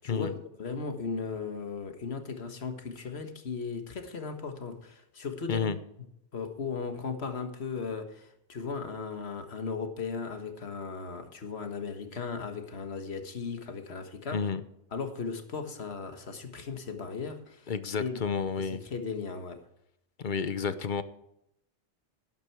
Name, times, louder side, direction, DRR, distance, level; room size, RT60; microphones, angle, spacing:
voice 1, 0.0-5.7 6.3-14.4 14.9-17.7 18.0-19.6, left 5 dB, 65° left, 6 dB, 1.7 m, -37 dB
voice 2, 17.7-18.8 20.2-21.0, left 6 dB, 45° left, 13 dB, 0.9 m, -31 dB
11.5 x 10.5 x 4.6 m, 0.80 s
omnidirectional pair, 1.2 m